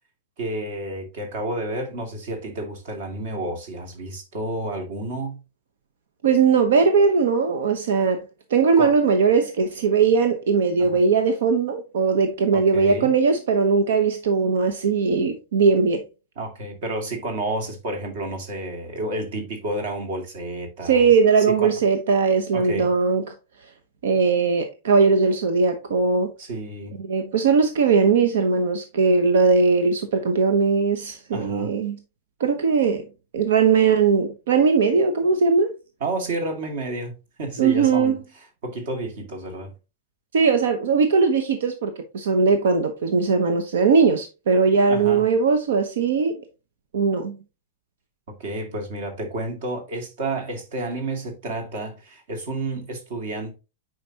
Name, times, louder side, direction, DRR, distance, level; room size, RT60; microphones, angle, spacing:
voice 1, 0.4-5.4 8.8-8.9 10.8-11.0 12.5-13.1 16.4-21.1 21.4-21.7 22.5-22.9 26.4-27.0 31.3-31.7 36.0-38.2 38.6-39.7 44.9-45.3 48.4-53.6, right 2 dB, 50° right, 2.4 m, -30 dB
voice 2, 6.2-8.2 8.5-16.0 20.8-23.2 24.0-26.3 27.1-32.0 32.4-33.1 33.3-35.7 37.6-38.2 40.3-46.4 46.9-47.4, right 5 dB, 80° right, 1.1 m, -19 dB
8.9 x 5.1 x 2.9 m
supercardioid pair, 180°, 0 cm